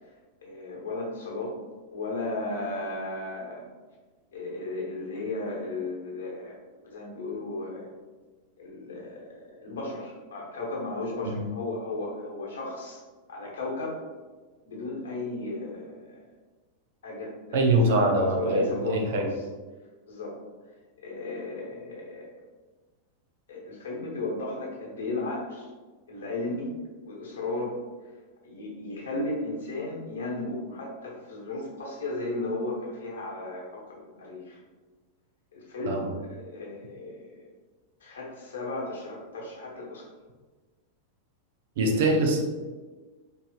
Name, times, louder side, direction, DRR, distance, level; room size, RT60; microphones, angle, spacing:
voice 1, 0.4-1.6 1.9-3.6 4.3-6.6 6.8-7.9 8.6-13.0 13.3-14.0 14.6-16.2 17.0-19.3 20.1-20.4 21.0-22.3 23.5-25.7 26.1-26.7 27.0-27.8 28.4-34.6 35.5-37.4 38.0-40.1 41.8-42.2, left 2 dB, 65° left, -2 dB, 1.1 m, -35 dB
voice 2, 17.5-19.3 35.9-36.1 41.8-42.4, right 1 dB, 55° right, 2 dB, 0.6 m, -23 dB
4.8 x 3.2 x 2.4 m, 1.3 s
figure-of-eight pair, 90°, 0 cm